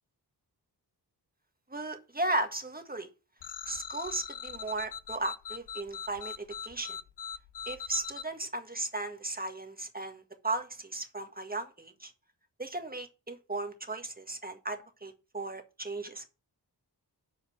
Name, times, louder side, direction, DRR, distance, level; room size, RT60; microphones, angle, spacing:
voice 1, 1.7-3.1 3.7-7.0 7.6-12.1 12.6-16.3, right 2 dB, 20° right, 6 dB, 1.6 m, -36 dB
sound 1, 3.4-8.2, left 7 dB, 75° left, 0.6 m, -41 dB
7.0 x 5.0 x 7.1 m, 0.31 s
wide cardioid pair, 60°, 42 cm